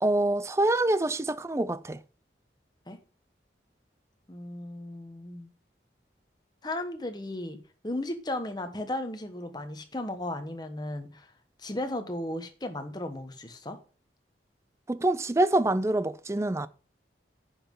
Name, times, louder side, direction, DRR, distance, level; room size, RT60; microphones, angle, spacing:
voice 1, 0.0-2.0 14.9-16.7, right 2 dB, 15° right, 0.4 m, -25 dB
voice 2, 4.3-5.5 6.6-7.6 7.8-11.3 11.6-13.8, left 1 dB, 25° left, 1.2 m, -35 dB
10.0 x 5.7 x 5.4 m
head